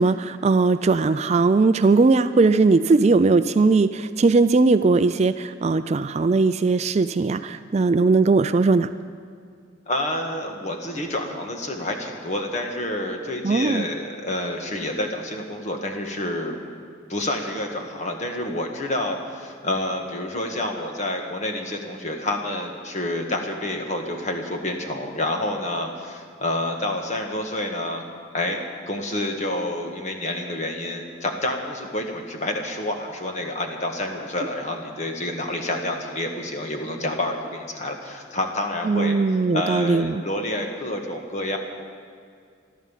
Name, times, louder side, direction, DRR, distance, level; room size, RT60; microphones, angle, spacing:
voice 1, 0.0-8.9 13.4-13.8 38.9-40.2, right 3 dB, 35° right, 11 dB, 0.3 m, -19 dB
voice 2, 9.9-16.5 17.1-28.0 28.3-41.6, left 1 dB, 35° left, 3 dB, 1.7 m, -28 dB
15.0 x 12.5 x 7.3 m, 2.2 s
head